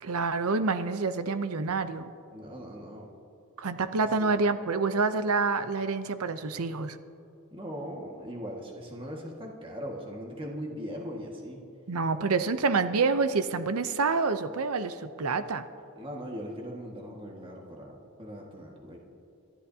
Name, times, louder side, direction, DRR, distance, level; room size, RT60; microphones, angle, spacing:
voice 1, 0.0-2.1 3.6-7.0 11.9-15.6, right 4 dB, 85° right, 10 dB, 0.7 m, -27 dB
voice 2, 2.3-3.1 4.2-4.3 7.5-11.6 16.0-19.0, equal, 25° right, -1 dB, 1.7 m, -40 dB
29.5 x 12.5 x 2.8 m, 2.8 s
head